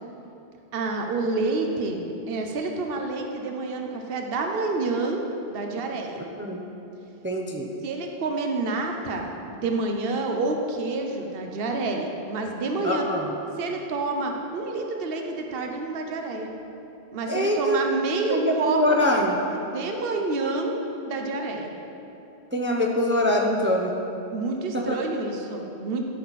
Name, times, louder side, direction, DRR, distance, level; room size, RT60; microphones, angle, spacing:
voice 1, 0.7-5.2 5.5-6.2 7.8-13.1 13.6-16.5 17.1-19.2 19.6-20.7 21.1-21.7 24.3-26.0, right 3 dB, 65° right, 3 dB, 1.0 m, -28 dB
voice 2, 7.2-7.7 12.8-13.3 17.3-17.8 18.3-19.4 22.5-23.9 24.7-25.0, left 1 dB, 15° right, 0 dB, 0.6 m, -23 dB
13.0 x 6.4 x 4.1 m, 2.9 s
omnidirectional pair, 1.1 m